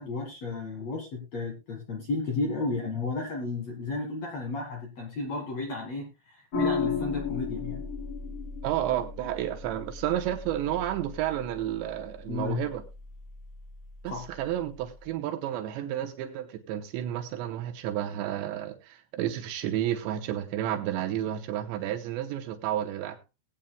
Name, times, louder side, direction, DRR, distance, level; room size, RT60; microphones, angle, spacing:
voice 1, 0.0-7.8 12.3-12.6 14.1-14.3, left 3 dB, 55° left, 2.1 m, -33 dB
sound 1, 6.5-15.1, left 5 dB, 35° left, 3.3 m, -36 dB
voice 2, 8.6-12.8 14.0-23.2, right 12 dB, 80° right, 3.0 m, -31 dB
20.0 x 8.8 x 2.2 m
omnidirectional pair, 5.2 m